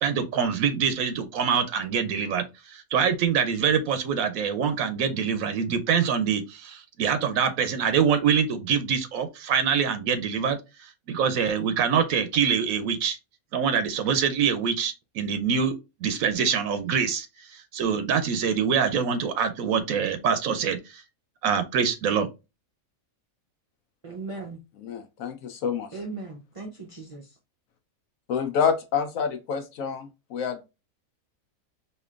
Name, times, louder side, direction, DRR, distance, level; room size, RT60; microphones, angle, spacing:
voice 1, 0.0-13.2 13.5-15.8 16.0-21.0 21.4-22.3, right 7 dB, 85° right, 1.0 m, -25 dB
voice 2, 24.0-24.6 25.9-27.2, right 3 dB, 40° right, 0.4 m, -37 dB
voice 3, 24.8-25.9 28.3-30.7, left 6 dB, 75° left, 1.0 m, -28 dB
4.3 x 2.7 x 2.3 m
omnidirectional pair, 1.4 m